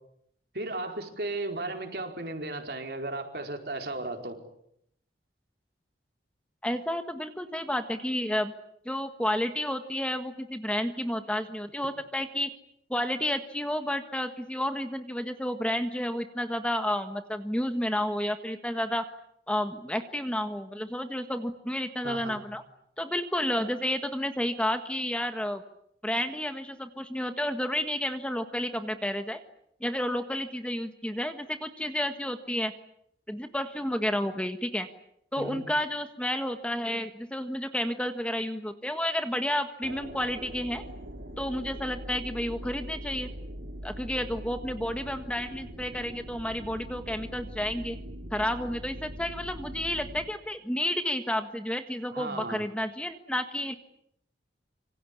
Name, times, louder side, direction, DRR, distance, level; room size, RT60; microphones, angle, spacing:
voice 1, 0.5-4.4 22.0-22.4 35.4-35.6 52.1-52.7, right 2 dB, 60° right, 4 dB, 4.7 m, -35 dB
voice 2, 6.6-8.5 8.8-12.5 12.9-19.0 19.5-22.6 23.0-25.6 26.0-29.4 29.8-32.7 33.3-34.9 35.3-40.8 41.4-43.3 43.8-48.0 48.3-53.7, left 1 dB, 5° left, 8 dB, 1.5 m, -31 dB
sound 1, 39.8-50.3, equal, 90° right, 4.3 m, -42 dB
26.5 x 25.5 x 8.5 m, 0.73 s
head